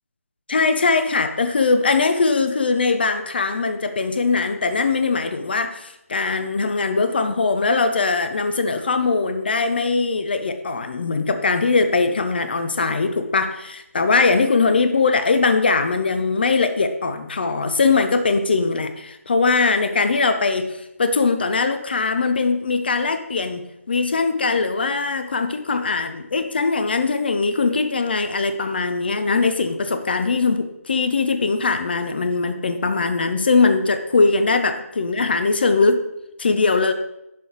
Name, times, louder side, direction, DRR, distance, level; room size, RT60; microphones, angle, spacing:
voice 1, 0.5-36.0 36.4-36.9, left 4 dB, 40° left, 9 dB, 0.5 m, -21 dB
11.0 x 3.9 x 2.9 m, 0.86 s
figure-of-eight pair, 150°, 8 cm